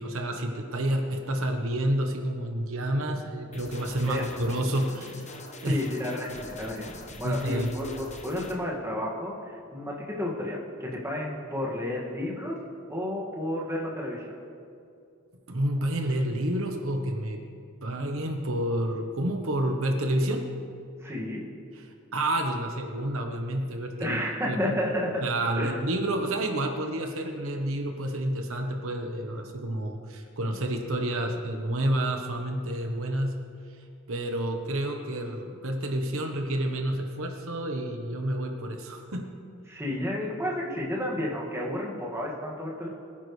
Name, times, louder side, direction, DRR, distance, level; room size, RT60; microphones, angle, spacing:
voice 1, 0.0-5.4 5.6-5.8 7.2-7.7 15.5-17.4 17.8-20.4 21.7-21.8 22.1-24.2 24.5-24.7 25.2-33.4 33.7-39.3, right 1 dB, 75° right, 3 dB, 1.1 m, -29 dB
sound 1, 3.5-8.5, left 2 dB, 35° left, 1.2 m, -44 dB
voice 2, 5.6-12.6 12.9-14.3 21.0-21.4 24.0-25.2 25.6-25.7 39.7-42.9, left 1 dB, 15° right, -4 dB, 2.0 m, -31 dB
22.0 x 10.0 x 3.3 m, 2.5 s
head